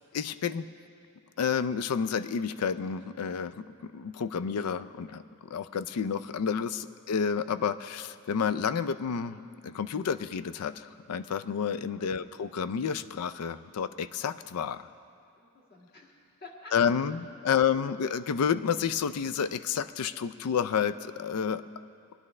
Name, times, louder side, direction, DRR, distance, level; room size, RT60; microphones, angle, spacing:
voice 1, 0.1-0.7 1.4-14.9 16.7-21.6, left 7 dB, 90° left, 14 dB, 0.4 m, -30 dB
voice 2, 15.4-17.1, left 2 dB, 45° left, -2 dB, 1.8 m, -52 dB
20.5 x 10.5 x 3.2 m, 2.5 s
head